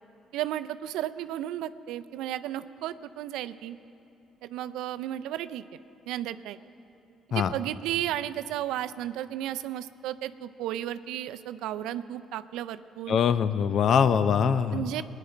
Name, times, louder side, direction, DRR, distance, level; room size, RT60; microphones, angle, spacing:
voice 1, 0.3-3.8 4.4-5.6 6.1-6.6 7.3-13.2 14.7-15.0, right 12 dB, 80° right, 13 dB, 0.4 m, -33 dB
voice 2, 13.1-15.0, left 7 dB, 65° left, 13 dB, 0.5 m, -23 dB
19.5 x 10.0 x 4.4 m, 2.8 s
supercardioid pair, 70°, 0 cm